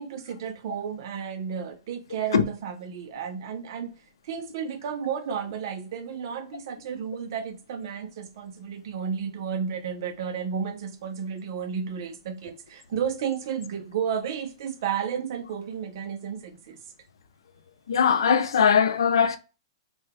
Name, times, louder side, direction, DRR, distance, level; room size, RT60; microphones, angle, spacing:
voice 1, 0.0-3.9 4.2-16.8, right 7 dB, 55° right, 0.5 m, -32 dB
voice 2, 17.9-19.4, left 7 dB, 85° left, 0.5 m, -20 dB
3.4 x 2.2 x 3.3 m
hypercardioid pair, 150°, 2 cm